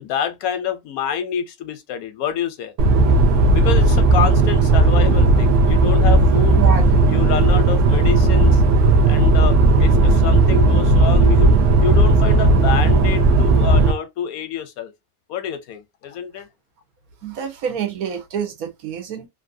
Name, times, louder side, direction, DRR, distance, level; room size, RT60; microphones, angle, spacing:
voice 1, 0.0-2.7 3.5-6.6 7.1-8.6 9.0-14.9 15.3-16.5, left 8 dB, 90° left, 1.1 m, -27 dB
sound 1, 2.8-13.9, right 2 dB, 65° right, 1.0 m, -14 dB
voice 2, 6.6-7.0 17.2-19.3, right 7 dB, 90° right, 1.3 m, -27 dB
3.0 x 2.7 x 2.6 m
omnidirectional pair, 1.5 m